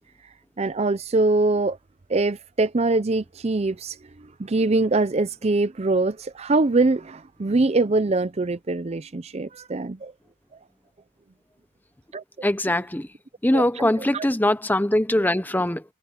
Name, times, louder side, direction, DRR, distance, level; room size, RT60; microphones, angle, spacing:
voice 1, 0.6-1.8 2.1-10.1 12.1-12.2 13.5-14.3, right 3 dB, 30° right, 0.5 m, -23 dB
voice 2, 12.4-13.1 13.4-15.8, left 1 dB, 10° left, 0.7 m, -22 dB
head